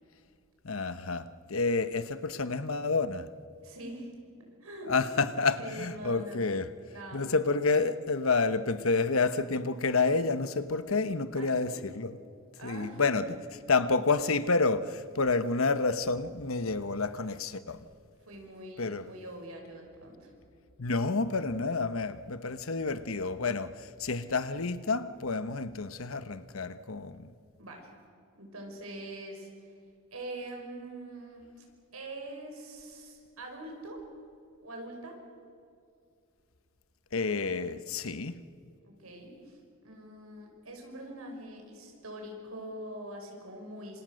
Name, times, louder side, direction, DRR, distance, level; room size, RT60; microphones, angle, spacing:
voice 1, 0.6-3.3 4.9-6.7 7.1-12.2 12.6-13.3 13.7-17.9 18.8-19.1 20.8-27.3 37.1-38.4, left 4 dB, 70° left, 1.1 m, -29 dB
voice 2, 3.6-4.1 4.6-5.0 5.6-6.5 6.9-7.3 11.3-11.8 12.6-13.2 18.3-20.3 27.6-27.9 28.3-29.7 30.1-31.4 31.9-34.0 34.6-35.2 38.8-39.6 39.8-44.0, right 1 dB, 90° right, 5.7 m, -43 dB
27.0 x 26.5 x 6.5 m
head